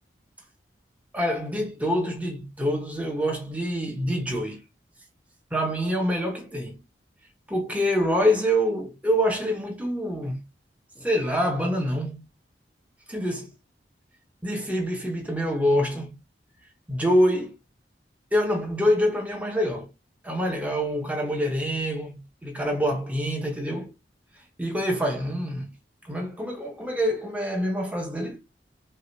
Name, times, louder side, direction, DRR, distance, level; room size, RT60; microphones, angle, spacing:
voice 1, 1.1-4.6 5.5-6.8 7.5-10.4 11.0-12.2 13.1-13.5 14.4-16.2 16.9-17.5 18.3-19.9 20.2-23.9 24.6-25.7 26.1-28.4, equal, 10° right, 0.9 m, -26 dB
5.5 x 2.4 x 3.2 m
head